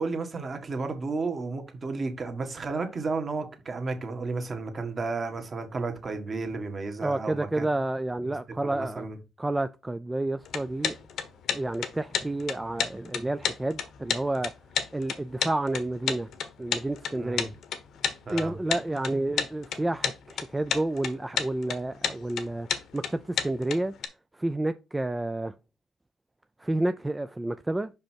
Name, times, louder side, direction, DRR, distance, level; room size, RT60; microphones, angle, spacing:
voice 1, 0.0-7.7 8.6-9.2 17.1-17.5 18.2-18.6, right 3 dB, 40° right, 1.6 m, -32 dB
voice 2, 7.0-9.1 9.4-11.0 11.5-14.5 14.9-16.3 16.6-17.5 18.3-22.7 22.9-23.9 24.4-25.5 26.6-27.9, right 2 dB, 15° right, 0.4 m, -30 dB
sound 1, 10.4-24.1, left 8 dB, 75° left, 1.1 m, -31 dB
5.6 x 5.3 x 4.5 m
cardioid pair, 90°, 0 cm